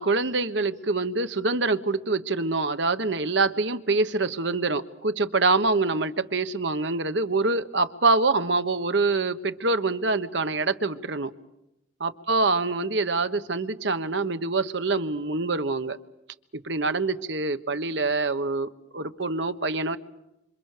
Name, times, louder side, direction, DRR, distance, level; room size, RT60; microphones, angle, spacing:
voice 1, 0.0-11.3 12.0-16.0 16.6-20.0, right 3 dB, 70° right, 10 dB, 1.3 m, -25 dB
27.0 x 27.0 x 6.8 m, 0.89 s
head